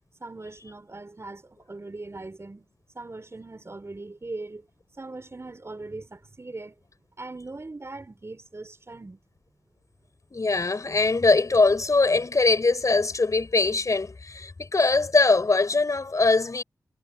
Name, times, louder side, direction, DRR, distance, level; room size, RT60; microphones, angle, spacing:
voice 1, 0.2-2.7 2.9-4.7 5.0-6.7 7.2-9.2, right 2 dB, 40° right, 4.6 m, -40 dB
voice 2, 10.3-16.6, left 3 dB, 50° left, 5.0 m, -22 dB
cardioid pair, 40°, 7 cm